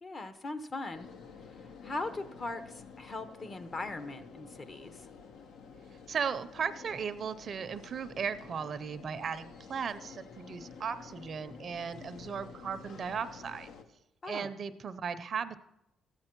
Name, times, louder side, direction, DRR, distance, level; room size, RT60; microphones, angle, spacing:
voice 1, 0.0-1.1 1.6-5.1 14.2-14.5, left 2 dB, 35° left, 11 dB, 0.8 m, -40 dB
sound 1, 0.9-13.8, left 5 dB, 80° left, 0.9 m, -50 dB
voice 2, 6.1-13.7 14.3-15.6, right 6 dB, 50° right, 12 dB, 0.6 m, -36 dB
13.5 x 8.9 x 4.5 m, 0.88 s
cardioid pair, 90°, 0 cm